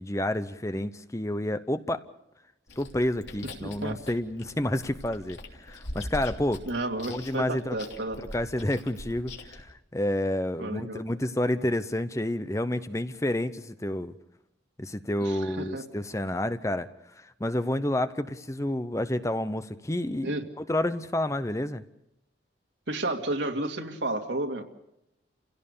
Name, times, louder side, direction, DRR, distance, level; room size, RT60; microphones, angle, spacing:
voice 1, 0.0-2.0 2.8-6.6 7.1-7.8 8.3-14.1 14.8-16.9 17.2-20.3 20.6-21.8, left 1 dB, 15° left, 12 dB, 0.7 m, -29 dB
Chewing mastication, 2.7-9.6, left 1 dB, 70° left, 3.4 m, -43 dB
voice 2, 3.6-3.9 6.6-8.2 10.6-11.0 15.2-15.8 20.2-20.4 22.9-24.6, right 2 dB, 75° right, 4 dB, 2.5 m, -31 dB
29.5 x 17.0 x 6.9 m, 0.86 s
head